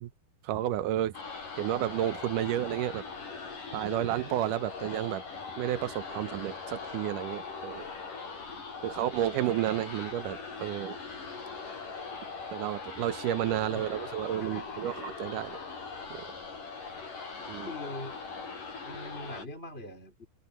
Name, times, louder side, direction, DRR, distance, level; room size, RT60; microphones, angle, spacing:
voice 1, 0.4-1.1 1.6-3.0 3.7-5.2 5.6-7.9 8.8-11.0 12.5-15.6 16.1-16.3 17.5-17.7, right 13 dB, 80° right, 2.4 m, -31 dB
sound 1, 1.1-19.5, left 4 dB, 80° left, 6.8 m, -41 dB
voice 2, 13.6-15.0 17.7-18.2 18.8-20.3, left 1 dB, 15° left, 4.1 m, -43 dB
open air
omnidirectional pair, 3.7 m